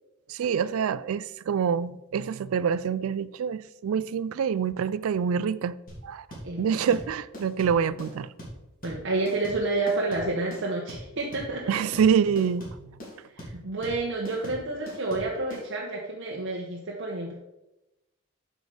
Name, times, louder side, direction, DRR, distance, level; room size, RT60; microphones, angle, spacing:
voice 1, 0.3-5.8 6.0-6.3 6.6-8.3 11.7-12.9, right 7 dB, 85° right, 0.3 m, -26 dB
sound 1, 5.9-15.6, equal, 45° left, 3.0 m, -41 dB
voice 2, 8.8-11.8 13.3-17.3, right 2 dB, 60° right, 1.1 m, -29 dB
8.0 x 5.1 x 5.0 m
head